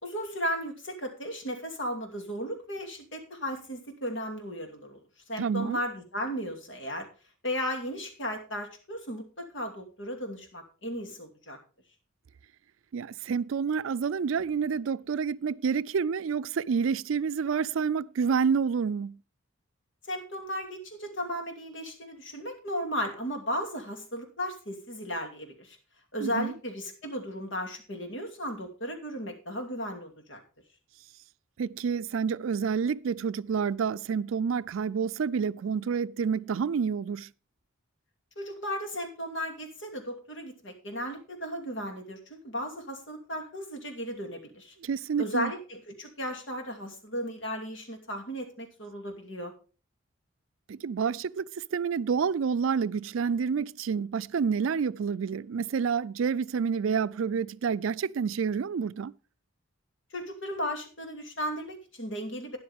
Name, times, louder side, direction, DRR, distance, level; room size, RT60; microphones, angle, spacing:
voice 1, 0.0-5.0 5.3-7.1 7.4-11.6 20.1-25.8 26.1-30.4 38.4-44.7 45.2-49.5 60.1-62.6, equal, 65° left, 2.6 m, -35 dB
voice 2, 5.4-5.8 12.9-19.2 26.2-26.5 31.6-37.3 44.8-45.5 50.7-59.1, right 6 dB, 80° right, 0.4 m, -28 dB
12.5 x 10.0 x 3.5 m
head